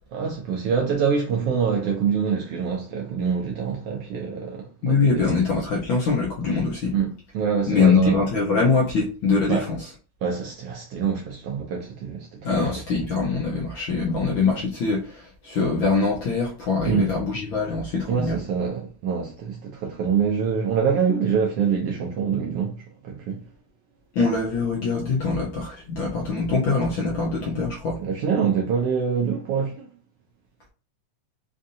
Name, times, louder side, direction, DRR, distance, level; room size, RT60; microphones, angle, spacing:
voice 1, 0.1-5.3 6.9-8.2 9.5-9.7 10.2-12.7 16.9-17.1 18.1-23.4 28.0-29.9, right 6 dB, 85° right, 1.3 m, -25 dB
voice 2, 4.8-6.9 7.7-9.8 12.4-18.4 24.1-28.0, left 4 dB, 70° left, 1.2 m, -23 dB
5.1 x 2.7 x 2.7 m
omnidirectional pair, 3.3 m